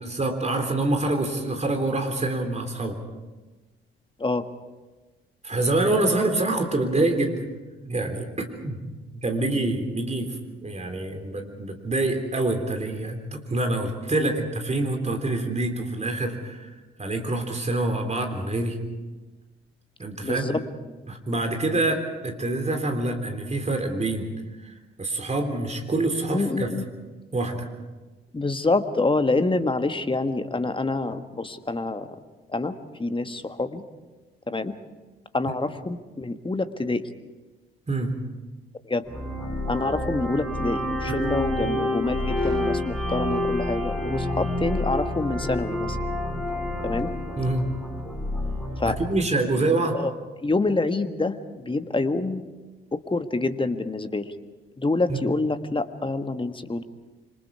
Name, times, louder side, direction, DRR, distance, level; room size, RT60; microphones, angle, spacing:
voice 1, 0.0-3.0 5.4-7.5 7.8-8.8 9.1-10.4 10.6-16.7 17.0-18.8 20.0-20.6 21.1-24.3 24.6-26.7 27.3-27.7 37.9-38.2 41.1-41.2 47.4-47.7 48.8-50.0 55.1-55.2, right 2 dB, 25° right, 4 dB, 3.6 m, -26 dB
voice 2, 20.2-20.6 26.3-26.8 28.3-32.2 32.5-33.8 34.5-34.7 35.3-37.0 38.8-39.1 39.7-46.0 46.8-47.1 48.8-49.0 49.9-50.1 50.4-52.4 52.9-54.3 54.8-56.8, left 3 dB, 15° left, 9 dB, 1.5 m, -26 dB
sound 1, 39.1-48.9, left 1 dB, ahead, 7.9 m, -28 dB
27.0 x 25.5 x 4.8 m, 1.2 s
figure-of-eight pair, 45°, 29 cm